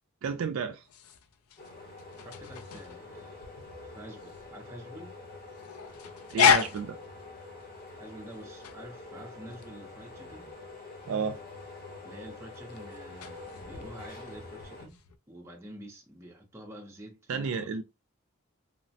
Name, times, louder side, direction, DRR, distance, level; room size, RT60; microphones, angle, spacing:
voice 1, 0.2-0.8 6.3-7.0 11.1-11.4 17.3-17.8, right 5 dB, 70° right, 0.3 m, -31 dB
sound 1, 0.7-15.2, left 7 dB, 75° left, 0.4 m, -33 dB
sound 2, 1.6-14.9, left 3 dB, 40° left, 0.8 m, -46 dB
voice 2, 2.2-3.5 3.8-5.2 8.0-10.6 12.0-15.0 15.3-17.8, right 1 dB, 10° right, 0.5 m, -48 dB
3.1 x 2.1 x 2.6 m
head